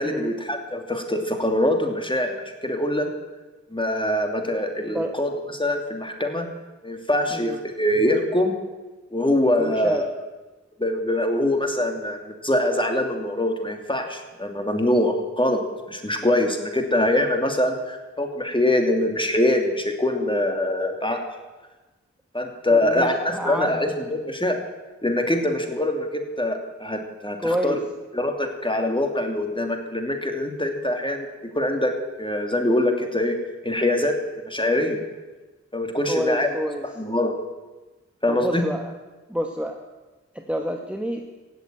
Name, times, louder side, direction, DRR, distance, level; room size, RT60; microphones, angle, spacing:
voice 1, 0.0-2.3 2.6-3.1 3.7-6.5 6.8-8.5 9.1-10.1 10.8-15.6 15.9-21.2 22.3-24.6 25.0-27.8 28.1-33.4 33.6-34.2 34.5-35.0 35.7-36.5 37.0-37.3 38.2-38.7, left 1 dB, 15° left, 4 dB, 2.7 m, -23 dB
voice 2, 9.6-10.0 22.7-23.7 27.4-27.8 36.1-36.8 38.3-38.9 39.3-39.8 40.3-41.2, equal, 5° right, 4 dB, 1.3 m, -28 dB
17.0 x 8.0 x 8.8 m, 1.2 s
cardioid pair, 45°, 29 cm